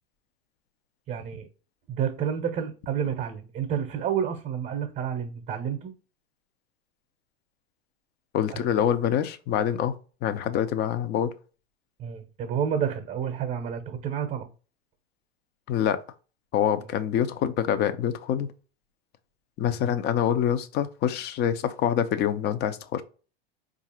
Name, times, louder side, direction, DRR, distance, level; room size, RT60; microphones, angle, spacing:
voice 1, 1.1-1.5 1.9-5.9 8.5-8.7 12.0-14.5, right 8 dB, 30° right, 0.7 m, -30 dB
voice 2, 8.3-9.9 10.2-11.3 15.7-16.0 16.5-18.5 19.6-23.0, left 9 dB, 35° left, 0.5 m, -25 dB
4.5 x 2.5 x 2.9 m
hypercardioid pair, 105°, 31 cm